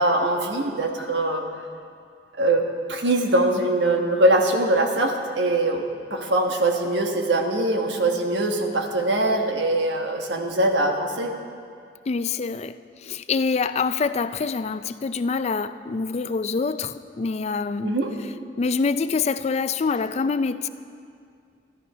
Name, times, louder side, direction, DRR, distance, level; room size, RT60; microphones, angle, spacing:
voice 1, 0.0-1.4 2.4-2.6 2.9-5.8 6.1-11.3 17.8-18.1, right 1 dB, 90° right, 3 dB, 1.4 m, -22 dB
voice 2, 12.1-17.9 18.6-20.7, left 4 dB, 35° left, 12 dB, 0.4 m, -25 dB
12.5 x 12.5 x 5.5 m, 2.3 s
head